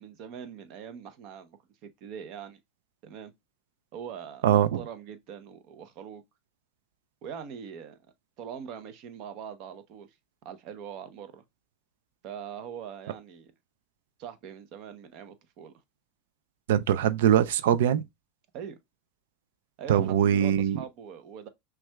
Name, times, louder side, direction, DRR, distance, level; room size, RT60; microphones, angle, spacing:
voice 1, 0.0-2.6 3.0-3.3 3.9-6.2 7.2-8.0 8.4-10.1 10.4-11.4 12.2-13.5 14.2-15.7 18.5-18.8 19.8-21.5, right 8 dB, 55° right, 0.7 m, -42 dB
voice 2, 4.4-4.8 16.7-18.0 19.9-20.8, right 10 dB, 85° right, 0.3 m, -22 dB
5.9 x 2.3 x 2.2 m
supercardioid pair, 115°, 0 cm